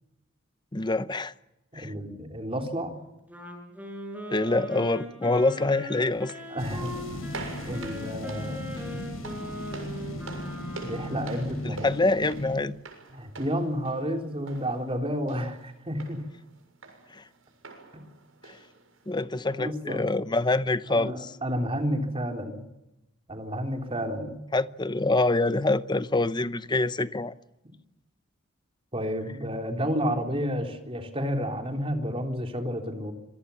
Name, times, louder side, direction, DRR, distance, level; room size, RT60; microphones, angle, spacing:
voice 1, 0.7-1.3 1.7-1.9 4.3-6.3 11.6-12.8 17.1-17.2 18.5-18.6 19.1-21.3 24.5-27.3, left 2 dB, 20° left, 0.8 m, -25 dB
voice 2, 1.7-3.0 6.5-7.3 7.6-8.7 10.8-11.9 13.1-16.2 19.6-20.1 20.9-22.7 23.3-24.4 28.9-33.1, equal, 30° right, 3.7 m, -31 dB
Wind instrument woodwind instrument, 3.3-11.6, left 1 dB, 10° right, 7.0 m, -40 dB
sound 1, 6.1-19.2, right 3 dB, 85° right, 6.9 m, -46 dB
sound 2, 6.6-12.6, left 1 dB, 85° left, 6.1 m, -37 dB
26.5 x 23.5 x 7.2 m
head